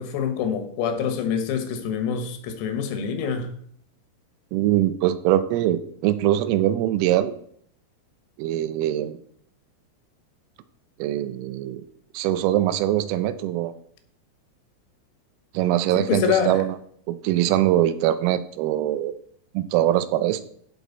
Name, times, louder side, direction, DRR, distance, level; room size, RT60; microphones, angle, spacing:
voice 1, 0.0-3.5 16.0-16.6, left 7 dB, 90° left, 4.1 m, -26 dB
voice 2, 4.5-7.3 8.4-9.2 11.0-11.8 12.2-13.7 15.6-16.8 17.1-19.1 19.6-20.4, right 13 dB, 85° right, 3.5 m, -22 dB
15.0 x 6.3 x 4.0 m
omnidirectional pair, 6.0 m